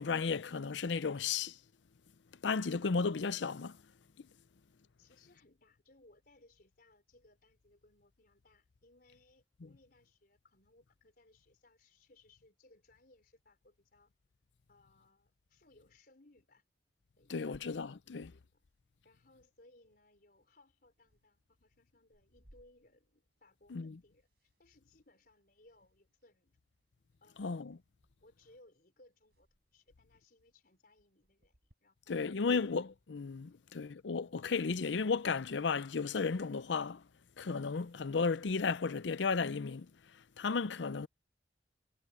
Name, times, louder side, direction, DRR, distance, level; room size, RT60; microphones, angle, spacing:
voice 1, 0.0-1.6 2.4-3.8 17.3-18.3 23.7-23.9 27.4-27.8 32.1-37.0 37.4-39.9 40.4-41.1, left 5 dB, 80° left, 0.6 m, -34 dB
voice 2, 5.0-14.1 14.7-16.6 17.2-17.7 18.0-18.6 19.0-26.6 27.2-27.6 28.2-32.7 33.5-33.9, left 2 dB, 55° left, 4.7 m, -66 dB
sound 1, 17.5-31.7, equal, 60° right, 6.3 m, -71 dB
head